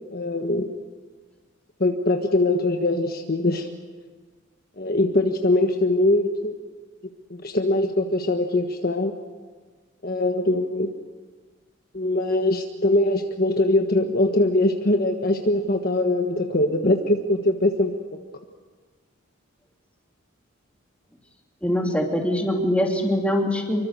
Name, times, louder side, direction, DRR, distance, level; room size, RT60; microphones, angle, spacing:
voice 1, 0.1-0.7 1.8-3.7 4.8-6.5 7.3-9.1 10.0-10.9 11.9-18.2, left 1 dB, 45° left, 4 dB, 1.4 m, -22 dB
voice 2, 21.6-23.9, equal, 5° left, 0 dB, 3.0 m, -23 dB
26.5 x 24.0 x 6.8 m, 1.4 s
head